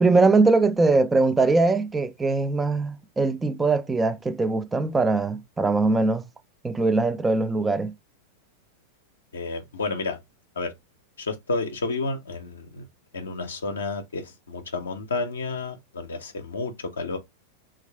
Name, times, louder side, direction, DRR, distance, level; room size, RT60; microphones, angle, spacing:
voice 1, 0.0-6.2 6.6-7.9, right 3 dB, 15° right, 0.3 m, -21 dB
voice 2, 9.3-10.2 10.6-10.7 11.2-12.8 13.1-17.2, left 3 dB, 70° left, 0.5 m, -31 dB
3.1 x 2.4 x 3.3 m
figure-of-eight pair, 90°, 0 cm